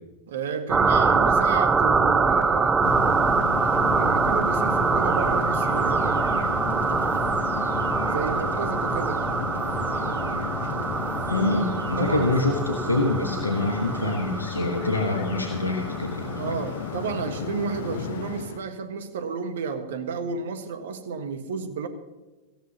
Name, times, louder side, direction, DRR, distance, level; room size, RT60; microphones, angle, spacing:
voice 1, 0.3-2.8 3.9-6.9 8.1-9.2 12.0-12.4 16.4-21.9, right 5 dB, 60° right, 9 dB, 1.5 m, -32 dB
sound 1, 0.7-17.0, right 4 dB, 15° right, 0.7 m, -24 dB
sound 2, 2.8-18.6, left 7 dB, 60° left, 0.8 m, -33 dB
sound 3, 5.7-12.6, right 1 dB, 85° right, 2.5 m, -41 dB
voice 2, 11.3-16.6, left 2 dB, 85° left, 2 dB, 1.5 m, -26 dB
17.5 x 16.0 x 2.9 m, 1.2 s
figure-of-eight pair, 90°, 0 cm